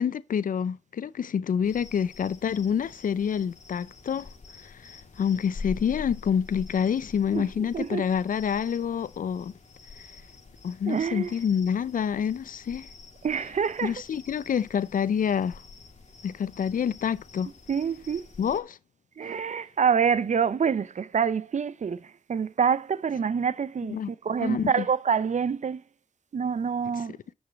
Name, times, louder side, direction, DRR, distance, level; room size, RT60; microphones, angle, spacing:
voice 1, 0.0-4.3 4.6-9.5 10.6-12.9 13.8-15.6 16.2-17.5 18.4-18.8 23.9-24.1 24.4-24.8, left 7 dB, 80° left, 0.5 m, -27 dB
sound 1, 1.6-18.6, left 4 dB, 60° left, 1.9 m, -46 dB
voice 2, 7.3-8.0 10.9-11.3 13.2-13.9 17.7-18.3 19.2-25.8 26.3-27.1, right 6 dB, 60° right, 0.5 m, -26 dB
8.0 x 6.4 x 4.0 m
cardioid pair, 65°, 14 cm